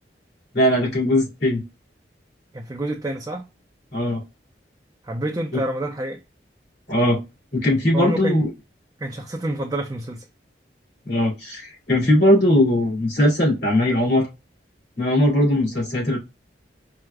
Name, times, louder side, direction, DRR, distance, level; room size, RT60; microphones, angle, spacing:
voice 1, 0.5-1.6 3.9-4.2 5.5-5.6 6.9-7.2 7.5-8.5 11.1-14.3 15.0-16.2, left 1 dB, 70° left, 2.1 m, -19 dB
voice 2, 2.5-3.5 5.0-6.2 7.9-8.4 9.0-10.2, right 1 dB, 20° right, 0.4 m, -28 dB
4.7 x 2.1 x 3.2 m
head